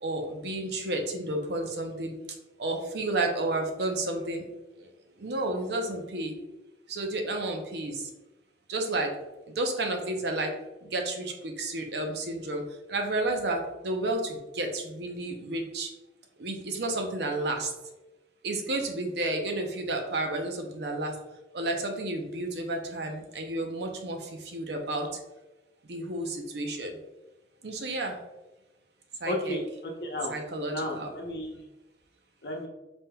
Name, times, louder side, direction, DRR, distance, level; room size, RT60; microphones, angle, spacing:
voice 1, 0.0-2.2 2.6-4.4 5.2-6.3 6.9-8.1 8.7-9.1 9.6-10.5 10.8-12.6 12.9-15.9 16.4-17.7 18.4-21.2 21.5-25.1 25.9-27.0 27.6-28.2 29.2-29.6 30.3-31.1, right 2 dB, 65° right, 3 dB, 0.6 m, -31 dB
voice 2, 29.2-30.4 30.7-31.5 32.4-32.7, left 1 dB, 65° left, 1 dB, 0.7 m, -33 dB
4.2 x 3.5 x 2.2 m, 1.0 s
head